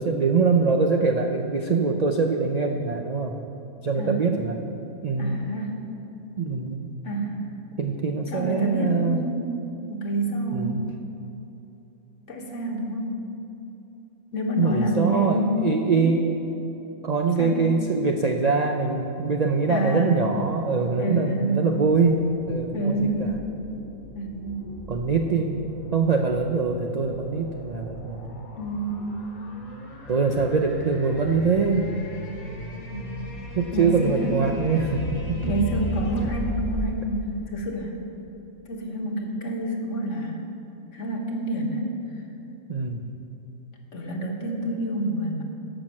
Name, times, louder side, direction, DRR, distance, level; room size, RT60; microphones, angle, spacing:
voice 1, 0.0-3.4 3.8-4.6 5.0-5.3 6.4-6.9 7.8-9.3 10.5-10.8 14.6-16.4 17.0-23.3 24.9-25.6 25.9-28.4 30.1-32.0 33.5-35.4 42.7-43.1, right 4 dB, 75° right, 3 dB, 0.3 m, -23 dB
voice 2, 5.2-5.8 7.0-7.5 8.3-9.5 9.9-10.9 12.3-13.2 14.3-16.1 17.4-17.7 19.7-20.2 21.0-21.6 22.7-23.4 24.2-24.6 28.6-29.3 32.9-33.2 33.7-34.4 35.4-38.0 38.7-40.4 40.9-42.0 43.9-45.4, right 1 dB, 55° left, 1 dB, 1.6 m, -28 dB
sound 1, 22.4-38.1, left 1 dB, 75° left, 2.0 m, -36 dB
11.5 x 6.2 x 7.4 m, 3.0 s
omnidirectional pair, 1.5 m